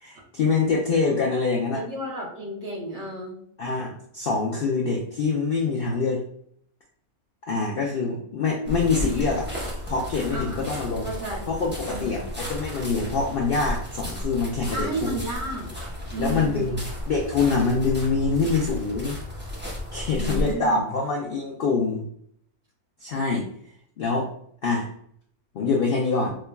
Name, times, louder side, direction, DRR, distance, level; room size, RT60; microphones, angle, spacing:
voice 1, 0.0-1.8 3.6-6.2 7.5-9.5 9.9-11.1 11.5-15.2 16.2-19.2 19.9-22.0 23.0-23.5 24.0-24.3 24.6-24.9 25.5-26.3, left 4 dB, 90° left, -1 dB, 0.5 m, -25 dB
voice 2, 1.7-3.4 10.3-11.6 11.9-12.3 14.7-15.7 16.1-16.7 20.1-20.8, right 1 dB, 55° right, -3 dB, 1.1 m, -33 dB
sound 1, 8.6-20.5, left 1 dB, 15° right, 0.4 m, -33 dB
4.5 x 2.2 x 2.2 m, 0.66 s
omnidirectional pair, 1.5 m